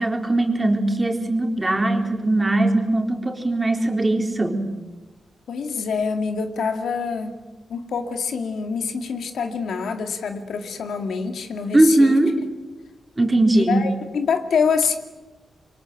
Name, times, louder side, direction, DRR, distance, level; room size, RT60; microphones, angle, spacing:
voice 1, 0.0-4.6 11.7-12.4 13.2-13.8, right 2 dB, 20° right, 3 dB, 4.0 m, -20 dB
voice 2, 5.5-7.3 7.7-12.2 13.5-15.0, left 5 dB, 85° left, 6 dB, 2.3 m, -25 dB
26.5 x 24.0 x 9.1 m, 1.2 s
cardioid pair, 85°, 0 cm